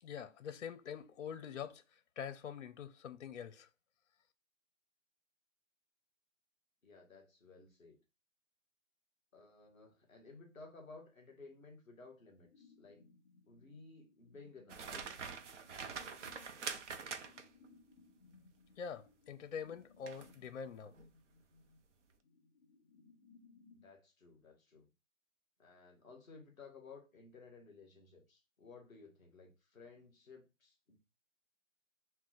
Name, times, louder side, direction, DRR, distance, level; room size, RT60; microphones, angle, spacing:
voice 1, 0.0-3.7 18.8-21.0, left 7 dB, 65° left, 0.5 m, -45 dB
voice 2, 6.8-8.0 9.3-13.0 13.4-15.1 23.7-24.9 25.6-31.0, left 4 dB, ahead, 0.6 m, -57 dB
sound 1, 12.4-23.9, left 4 dB, 25° left, 1.4 m, -65 dB
sound 2, 14.7-17.7 20.1-20.3 20.9-21.1, right 6 dB, 65° right, 0.6 m, -45 dB
5.8 x 2.2 x 2.4 m
hypercardioid pair, 165°, 39 cm